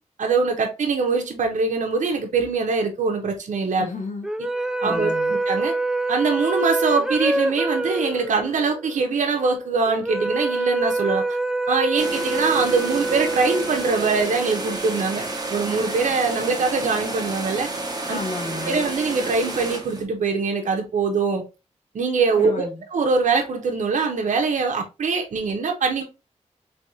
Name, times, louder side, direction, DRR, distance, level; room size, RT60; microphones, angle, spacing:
voice 1, 0.2-3.8 4.8-5.7 6.1-11.2 11.7-17.7 18.1-18.2 18.6-21.4 21.9-26.0, right 4 dB, 80° right, 0.8 m, -23 dB
voice 2, 3.8-4.3 4.8-5.3 18.1-18.9 22.4-22.8, left 3 dB, 80° left, 1.3 m, -32 dB
sound 1, 4.2-14.7, right 2 dB, 5° right, 0.3 m, -26 dB
sound 2, 12.0-20.0, right 2 dB, 30° right, 1.1 m, -30 dB
3.4 x 3.2 x 2.6 m
cardioid pair, 80°, 13 cm